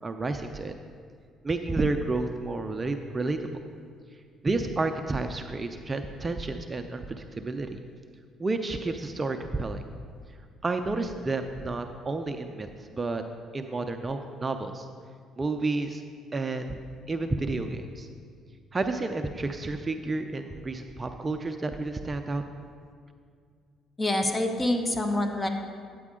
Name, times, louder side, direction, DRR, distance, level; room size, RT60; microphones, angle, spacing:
voice 1, 0.0-0.7 1.4-3.5 4.4-7.8 8.4-9.8 10.6-13.2 13.5-14.8 15.4-16.0 16.3-16.8 17.1-18.1 18.7-22.4, right 3 dB, 30° right, 6 dB, 0.5 m, -30 dB
voice 2, 24.0-25.5, left 1 dB, 25° left, 5 dB, 1.1 m, -26 dB
9.3 x 8.4 x 3.7 m, 2.2 s
supercardioid pair, 65°, 0 cm